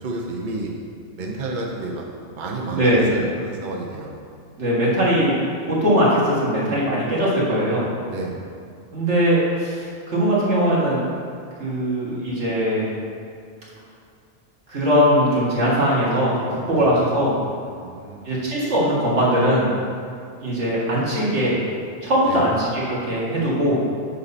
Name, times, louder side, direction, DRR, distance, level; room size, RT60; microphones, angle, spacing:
voice 1, 0.0-0.7 1.2-2.0 2.3-4.1 8.1-8.4 16.7-16.9 17.7-18.3 22.3-22.5, right 2 dB, 45° right, -1 dB, 0.9 m, -31 dB
voice 2, 2.7-3.1 4.6-5.3 5.7-7.9 8.9-11.0 11.6-12.9 14.7-17.3 18.2-19.7 20.4-21.6 22.0-23.8, equal, 90° right, -7 dB, 2.3 m, -20 dB
8.1 x 5.6 x 4.2 m, 2.4 s
omnidirectional pair, 1.2 m